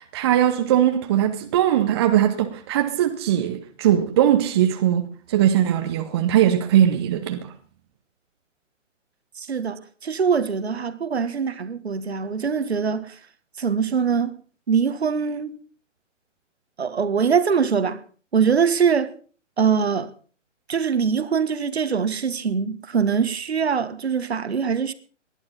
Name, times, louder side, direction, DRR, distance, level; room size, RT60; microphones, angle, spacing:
voice 1, 0.0-7.5, right 11 dB, 20° right, 1.0 m, -20 dB
voice 2, 9.4-13.2 13.6-14.3 14.7-15.6 16.8-18.0 18.3-19.1 19.6-20.1 20.7-24.9, right 6 dB, 55° right, 1.5 m, -23 dB
19.5 x 11.5 x 5.6 m
figure-of-eight pair, 140°, 38 cm